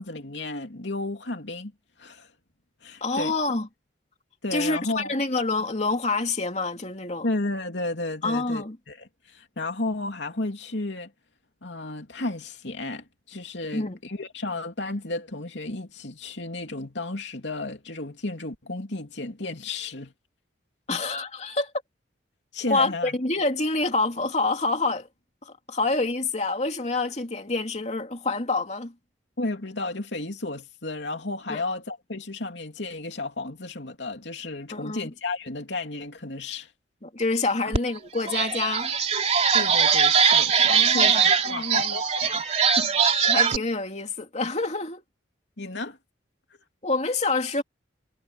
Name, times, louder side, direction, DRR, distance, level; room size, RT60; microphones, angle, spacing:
voice 1, 0.0-1.7 2.0-2.3 2.8-3.3 4.4-5.1 7.2-11.1 11.6-20.1 22.5-23.1 29.4-36.7 37.6-37.7 39.5-42.4 42.8-42.9 45.6-46.0, left 2 dB, 75° left, 2.9 m, -33 dB
voice 2, 3.0-3.7 4.5-7.3 8.2-8.8 13.7-14.0 20.9-21.7 22.7-25.1 25.4-28.9 31.5-31.6 34.7-35.1 37.0-38.9 40.6-42.0 43.3-45.0 46.8-47.6, left 3 dB, 40° left, 2.7 m, -27 dB
sound 1, 37.7-37.8 38.2-43.6, right 6 dB, 35° right, 3.4 m, -21 dB
head